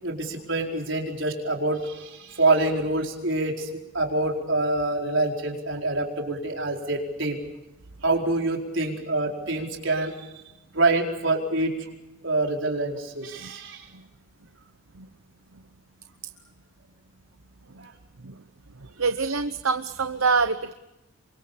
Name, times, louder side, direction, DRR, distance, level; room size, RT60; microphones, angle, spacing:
voice 1, 0.0-3.7 3.9-7.4 8.0-10.4 10.7-11.7 12.2-13.9 17.8-17.9, right 2 dB, 65° right, 1 dB, 4.7 m, -26 dB
voice 2, 19.0-20.7, right 4 dB, 80° right, 10 dB, 0.9 m, -25 dB
28.0 x 24.5 x 7.0 m, 0.96 s
head